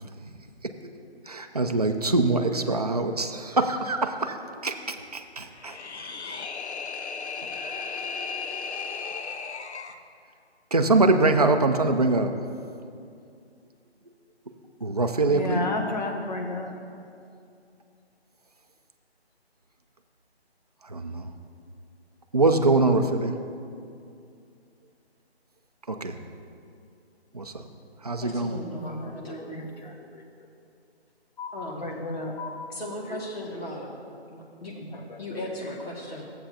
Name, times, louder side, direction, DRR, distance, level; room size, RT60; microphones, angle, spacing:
voice 1, 1.3-6.1 7.5-8.0 10.7-12.3 14.8-15.7 20.8-21.3 22.3-23.4 25.9-26.1 27.3-27.6 28.0-28.6, right 3 dB, 40° right, 5 dB, 0.4 m, -24 dB
sound 1, 5.5-10.0, left 5 dB, 85° left, 0.7 m, -35 dB
voice 2, 15.3-16.8 28.7-30.5 31.4-32.6 33.1-33.2 34.8-35.8, left 2 dB, 40° left, 2 dB, 1.0 m, -34 dB
voice 3, 28.2-29.6 31.5-31.9 32.7-33.9 34.3-34.8 35.2-36.2, left 1 dB, 65° left, -4 dB, 2.2 m, -37 dB
14.0 x 7.7 x 2.8 m, 2.5 s
hypercardioid pair, 170°, 33 cm